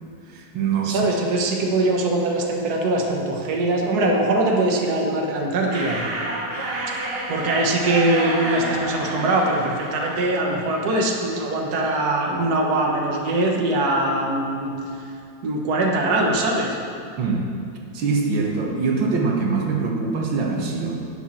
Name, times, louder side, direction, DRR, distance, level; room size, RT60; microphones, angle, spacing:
voice 1, 0.3-1.0 17.2-17.5 17.9-21.1, right 4 dB, 85° right, 0 dB, 2.0 m, -23 dB
voice 2, 0.8-6.0 6.9-14.7 15.4-16.8, right 2 dB, 55° right, 0 dB, 1.7 m, -22 dB
sound 1, 5.7-11.2, right 2 dB, 35° right, 1.5 m, -30 dB
11.5 x 6.5 x 7.5 m, 2.4 s
omnidirectional pair, 2.1 m